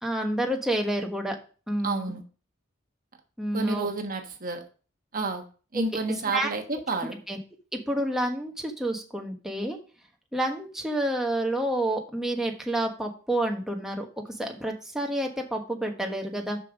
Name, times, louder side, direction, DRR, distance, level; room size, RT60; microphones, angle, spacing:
voice 1, 0.0-1.4 1.7-2.1 3.4-3.9 6.3-6.5 7.3-7.4 7.7-9.8 10.3-14.1 14.4-16.6, right 1 dB, ahead, 1 dB, 1.2 m, -29 dB
voice 2, 1.8-2.2 3.5-4.6 5.1-5.4 5.7-7.2, right 3 dB, 45° right, 4 dB, 1.2 m, -30 dB
6.6 x 5.8 x 5.0 m, 0.37 s
head